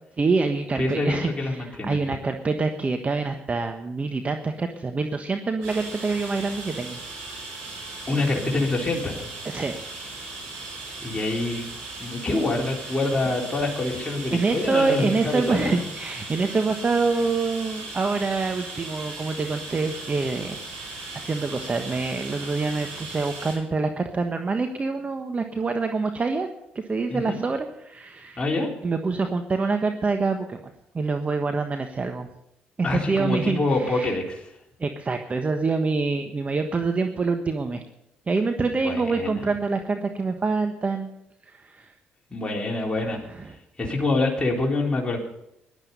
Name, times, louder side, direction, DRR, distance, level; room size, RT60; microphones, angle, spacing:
voice 1, 0.2-7.0 7.7-7.8 9.4-9.8 14.3-20.6 21.1-26.5 26.9-28.4 28.8-32.3 32.8-34.1 34.8-37.8 38.3-41.1 41.5-41.9 43.3-43.5, right 4 dB, 35° right, 6 dB, 1.3 m, -26 dB
voice 2, 0.8-2.0 8.1-9.3 11.0-11.7 12.0-15.7 27.1-27.4 28.4-28.7 32.8-34.5 38.8-39.4 42.3-43.2 43.8-45.2, left 2 dB, 25° left, -2 dB, 3.9 m, -26 dB
sound 1, 5.6-23.5, right 2 dB, 85° right, 6.8 m, -38 dB
16.0 x 11.5 x 5.5 m, 0.82 s
hypercardioid pair, 55°, 4 cm